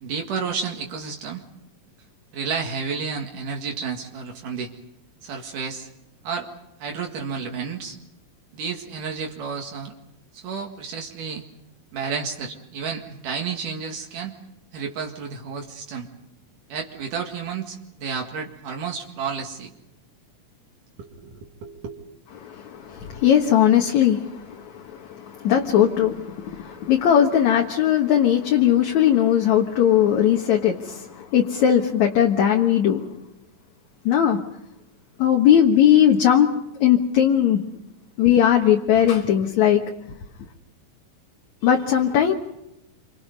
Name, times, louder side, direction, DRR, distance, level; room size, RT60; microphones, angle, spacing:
voice 1, 0.0-1.4 2.3-4.7 5.2-5.9 6.2-6.5 6.8-8.0 8.5-9.9 10.3-11.4 11.9-14.4 14.7-16.1 16.7-19.7 21.0-22.0, right 5 dB, 75° right, 1 dB, 3.5 m, -31 dB
voice 2, 22.4-33.1 34.1-34.4 35.2-36.5 36.8-37.6 38.2-39.8 41.6-42.3, left 10 dB, 65° left, 1 dB, 2.6 m, -19 dB
28.5 x 25.5 x 5.4 m, 0.84 s
omnidirectional pair, 3.7 m